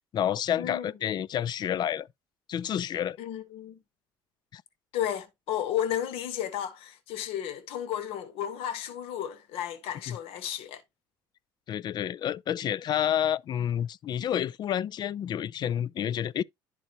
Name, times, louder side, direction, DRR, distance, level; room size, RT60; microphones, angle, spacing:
voice 1, 0.0-2.1 2.5-3.2 4.5-4.6 10.1-10.2 11.7-16.4, left 10 dB, 45° left, 0.4 m, -29 dB
voice 2, 0.6-0.9 3.2-3.8 4.9-10.8, left 10 dB, 70° left, 1.2 m, -33 dB
11.0 x 4.0 x 2.8 m
supercardioid pair, 85°, 10 cm